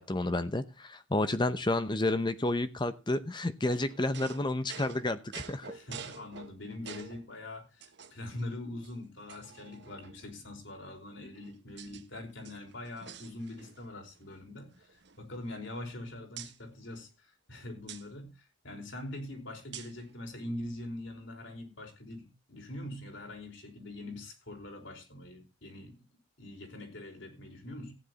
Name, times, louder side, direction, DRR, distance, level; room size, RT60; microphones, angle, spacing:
voice 1, 0.0-5.7, left 2 dB, 20° left, 11 dB, 0.8 m, -30 dB
sound 1, 3.7-7.3 7.8-8.4 8.8-8.9 9.3-10.3 11.1-12.0 12.3-13.9 14.2-14.4 14.7-16.0 16.4-16.6 17.9-18.1 19.7-20.1, right 7 dB, 60° right, 1.4 m, -48 dB
voice 2, 5.7-26.0 26.4-28.0, left 1 dB, 65° left, 4 dB, 5.0 m, -43 dB
15.0 x 10.0 x 4.1 m, 0.28 s
head